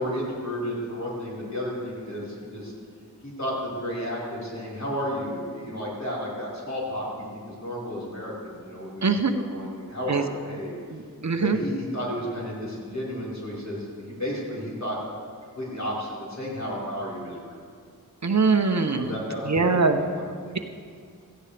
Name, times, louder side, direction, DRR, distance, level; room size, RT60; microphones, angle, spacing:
voice 1, 0.0-2.7 3.2-10.7 11.4-15.0 15.5-17.6 19.0-20.5, equal, 50° left, -7 dB, 4.6 m, -32 dB
voice 2, 9.0-9.4 10.1-10.2 10.9-11.6 18.2-19.1 19.5-20.0, right 4 dB, 50° right, 6 dB, 0.8 m, -22 dB
17.0 x 15.0 x 3.4 m, 2.1 s
wide cardioid pair, 60°, 34 cm